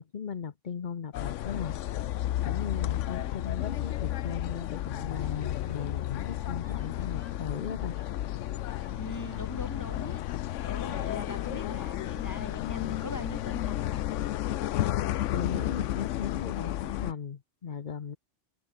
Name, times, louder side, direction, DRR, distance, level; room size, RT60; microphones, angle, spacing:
voice 1, 0.0-1.8 2.4-8.0 15.3-18.2, left 7 dB, 45° left, 0.9 m, -37 dB
sound 1, 1.1-17.1, left 13 dB, 90° left, 1.0 m, -32 dB
sound 2, 3.6-12.5, right 1 dB, 20° right, 3.4 m, -60 dB
voice 2, 8.9-14.1, left 2 dB, 15° left, 1.6 m, -41 dB
omnidirectional pair, 1.2 m